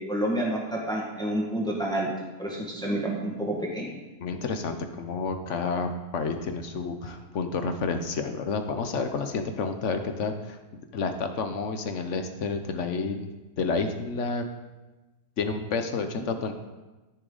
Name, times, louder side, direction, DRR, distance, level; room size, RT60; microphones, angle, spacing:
voice 1, 0.0-2.1 2.4-3.9 7.0-7.1, right 1 dB, 5° left, -3 dB, 1.6 m, -29 dB
voice 2, 4.2-13.3 13.6-14.5 15.4-16.5, left 4 dB, 55° left, 7 dB, 1.0 m, -30 dB
13.5 x 6.5 x 4.0 m, 1.1 s
omnidirectional pair, 1.7 m